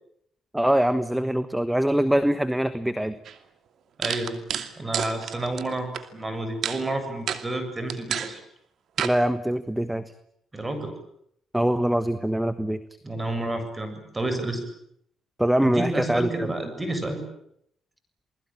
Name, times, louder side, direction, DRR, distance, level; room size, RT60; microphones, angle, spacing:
voice 1, 0.5-3.2 9.0-10.0 11.5-12.8 15.4-16.5, right 1 dB, 5° right, 13 dB, 1.3 m, -23 dB
sound 1, 3.3-3.4 4.0-6.0 6.6-6.8 7.3-7.4 7.9-8.3 9.0-9.2, right 8 dB, 65° right, 2.5 m, -29 dB
voice 2, 4.0-4.4 4.8-8.4 10.5-10.9 13.0-14.6 15.6-17.2, right 2 dB, 20° right, 8 dB, 7.4 m, -30 dB
29.0 x 21.0 x 9.1 m, 0.72 s
cardioid pair, 90°, 0 cm